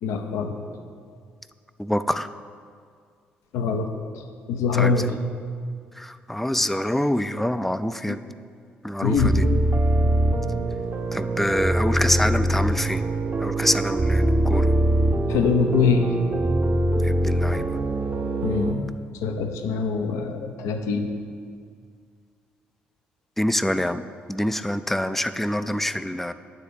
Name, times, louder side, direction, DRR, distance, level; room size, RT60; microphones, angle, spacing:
voice 1, 0.0-0.5 3.5-3.9 4.1-5.1 8.1-8.2 9.0-9.4 15.3-16.1 18.4-18.8 19.2-21.1, left 5 dB, 65° left, 6 dB, 0.6 m, -23 dB
voice 2, 1.8-2.3 4.7-4.9 6.0-8.2 8.8-9.4 11.1-13.0 13.4-14.7 17.0-17.8 23.4-26.3, left 1 dB, 5° left, 12 dB, 0.3 m, -25 dB
sound 1, 9.1-18.7, right 1 dB, 30° right, 0.6 m, -23 dB
9.0 x 4.0 x 6.8 m, 2.1 s
figure-of-eight pair, 45°, 6 cm